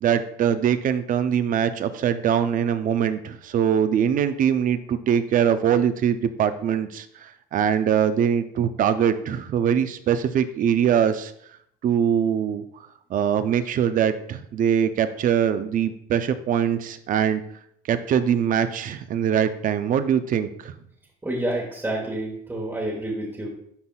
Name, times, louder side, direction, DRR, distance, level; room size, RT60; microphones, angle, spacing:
voice 1, 0.0-11.3 11.8-12.6 13.1-17.4 17.9-20.7, right 8 dB, 55° right, 11 dB, 0.5 m, -22 dB
voice 2, 21.2-23.5, right 1 dB, 10° right, -4 dB, 1.2 m, -28 dB
11.0 x 4.0 x 2.3 m, 0.68 s
cardioid pair, 110°, 17 cm